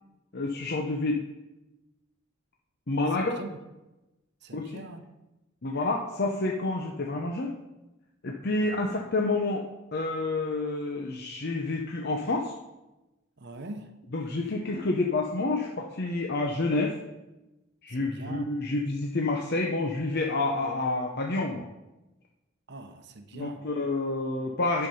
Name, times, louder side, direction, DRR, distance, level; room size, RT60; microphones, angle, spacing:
voice 1, 0.3-1.2 2.9-3.4 4.5-4.8 5.6-7.6 8.2-9.6 9.9-12.5 14.1-17.0 17.8-21.6 23.3-24.9, left 2 dB, 50° left, 0 dB, 0.8 m, -29 dB
voice 2, 3.2-3.6 4.4-5.0 8.6-8.7 13.4-13.9 18.2-18.5 22.7-23.6, right 2 dB, 55° right, 8 dB, 0.9 m, -42 dB
10.5 x 5.8 x 5.4 m, 1.0 s
head